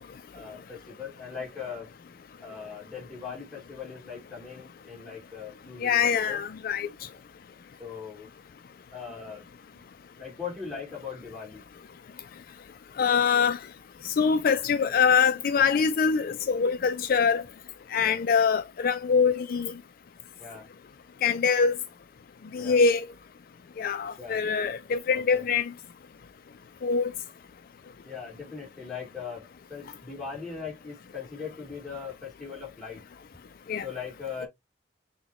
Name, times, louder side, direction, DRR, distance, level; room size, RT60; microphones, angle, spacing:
voice 1, 0.3-1.9 2.4-6.4 7.8-8.3 8.9-9.4 10.2-11.6 17.9-18.2 20.4-20.7 22.6-22.8 24.2-24.4 25.1-25.4 28.0-33.0 33.8-34.5, left 6 dB, ahead, 2.2 m, -40 dB
voice 2, 5.8-6.9 13.0-13.6 14.0-17.4 17.9-19.7 21.2-21.7 22.5-23.0 23.8-25.6 26.8-27.1 33.7-33.8, left 6 dB, 55° left, 0.3 m, -24 dB
6.1 x 2.2 x 2.9 m
head